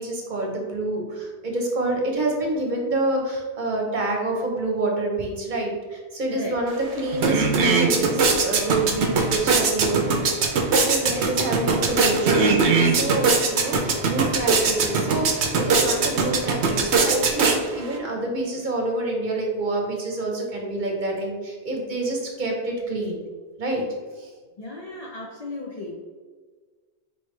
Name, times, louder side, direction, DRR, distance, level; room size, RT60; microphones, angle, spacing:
voice 1, 0.0-10.3 10.7-23.2 23.6-23.8 24.2-24.3, right 2 dB, 50° right, 0 dB, 0.9 m, -27 dB
sound 1, 6.7-6.8 7.1-18.0, right 4 dB, 90° right, 0.9 m, -21 dB
voice 2, 24.6-25.9, left 2 dB, 50° left, -2 dB, 0.5 m, -35 dB
4.4 x 3.2 x 3.2 m, 1.4 s
omnidirectional pair, 1.1 m